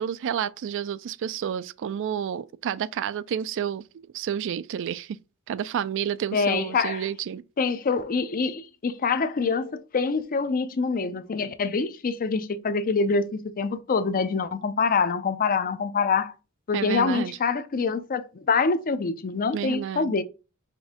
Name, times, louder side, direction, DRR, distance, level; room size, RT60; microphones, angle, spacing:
voice 1, 0.0-3.8 4.1-5.2 5.5-7.4 16.7-17.4 19.5-20.1, right 8 dB, 55° right, 0.3 m, -30 dB
voice 2, 6.3-7.0 7.6-16.3 16.7-20.2, left 4 dB, 40° left, 0.5 m, -25 dB
5.2 x 2.6 x 3.6 m
head